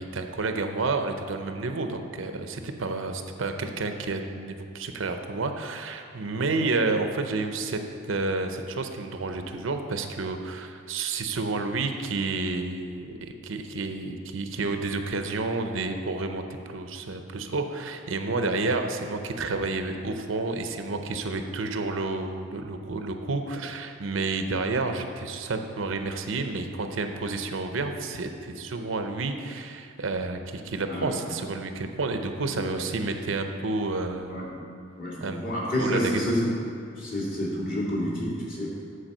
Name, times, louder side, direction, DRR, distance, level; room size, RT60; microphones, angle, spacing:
voice 1, 0.0-7.8 8.1-13.2 13.4-34.6 35.2-35.4 35.8-36.2, right 3 dB, 75° right, 6 dB, 0.7 m, -30 dB
voice 2, 35.0-36.5 37.0-38.8, equal, 45° left, -5 dB, 2.2 m, -29 dB
8.9 x 4.8 x 6.6 m, 2.4 s
head